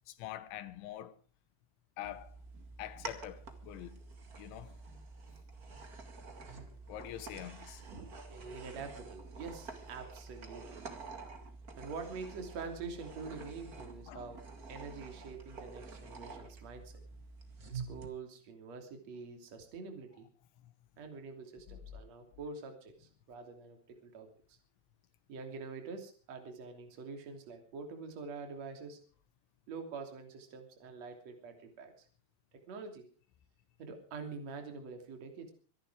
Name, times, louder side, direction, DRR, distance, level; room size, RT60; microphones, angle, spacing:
voice 1, 0.1-1.2 2.0-2.4 2.8-4.0 4.4-4.8 6.9-7.8 14.1-14.3 21.7-21.8, left 12 dB, 85° left, 3.6 m, -45 dB
sound 1, 2.0-18.1, right 4 dB, 60° right, 0.9 m, -48 dB
voice 2, 7.9-10.9 11.8-14.4 14.7-16.9 17.7-20.3 21.0-24.6 25.3-29.0 29.7-31.9 32.7-33.1 33.8-35.5, right 4 dB, 40° right, 3.7 m, -46 dB
24.5 x 11.0 x 4.9 m
omnidirectional pair, 5.3 m